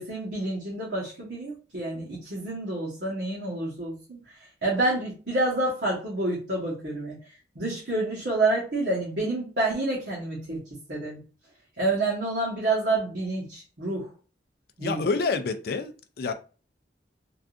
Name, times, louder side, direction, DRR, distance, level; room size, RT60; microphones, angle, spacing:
voice 1, 0.0-4.2 4.6-7.1 7.5-10.6 10.9-11.2 11.8-14.1 14.8-15.0, right 2 dB, 65° right, 1.1 m, -28 dB
voice 2, 14.8-16.3, left 4 dB, 55° left, 0.4 m, -28 dB
3.5 x 2.4 x 2.4 m
head